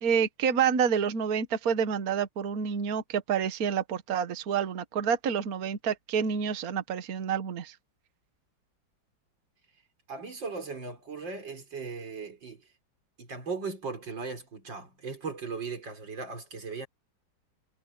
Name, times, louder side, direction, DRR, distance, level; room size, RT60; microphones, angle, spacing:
voice 1, 0.0-7.8, right 7 dB, 55° right, 1.6 m, -28 dB
voice 2, 10.1-12.6 13.2-16.9, right 4 dB, 80° right, 4.8 m, -38 dB
omnidirectional pair, 2.0 m